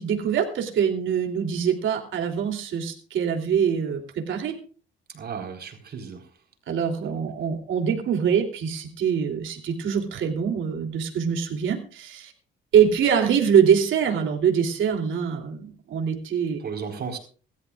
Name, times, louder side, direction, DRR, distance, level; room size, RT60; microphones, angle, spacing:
voice 1, 0.0-4.5 6.7-12.3 12.7-16.6, right 7 dB, 75° right, 3.1 m, -24 dB
voice 2, 5.1-6.3 16.6-17.2, right 6 dB, 55° right, 4.3 m, -34 dB
25.0 x 13.0 x 2.4 m
cardioid pair, 90°, 20 cm